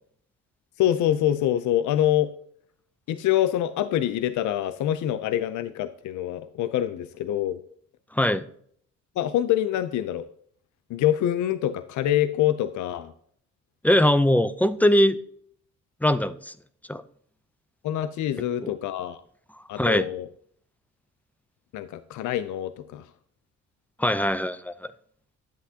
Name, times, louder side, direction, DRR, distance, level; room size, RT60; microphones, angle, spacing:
voice 1, 0.8-2.3 3.1-7.6 9.2-10.3 10.9-13.1 17.8-19.2 19.7-20.3 21.7-23.1, left 12 dB, 75° left, 0.5 m, -25 dB
voice 2, 8.2-8.5 13.8-15.2 16.0-16.5 16.9-17.0 18.6-18.7 19.8-20.0 24.0-24.7, left 1 dB, 5° left, 0.5 m, -21 dB
10.5 x 7.9 x 2.8 m
cardioid pair, 90°, 30 cm